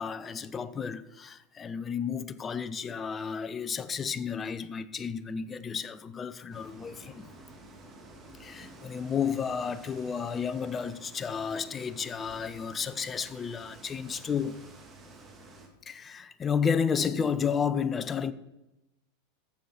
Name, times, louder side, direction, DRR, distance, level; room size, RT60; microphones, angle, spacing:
voice 1, 0.0-7.3 8.3-14.6 15.9-18.3, left 6 dB, 25° left, 0.6 m, -32 dB
sound 1, 6.5-15.7, right 2 dB, 25° right, 2.0 m, -51 dB
14.0 x 7.1 x 4.4 m
hypercardioid pair, 90°, 0 cm